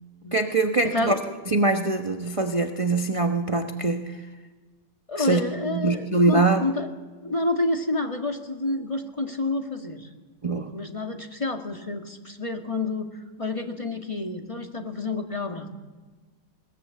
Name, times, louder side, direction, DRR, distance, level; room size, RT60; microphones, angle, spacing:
voice 1, 0.3-1.2 1.5-4.2 5.2-5.4 5.7-6.6 10.4-10.7, right 3 dB, 25° right, 5 dB, 0.9 m, -23 dB
voice 2, 0.8-1.2 5.1-6.9 7.2-10.1 10.7-15.7, left 2 dB, 20° left, 3 dB, 1.9 m, -29 dB
21.0 x 20.0 x 8.5 m, 1.3 s
omnidirectional pair, 1.9 m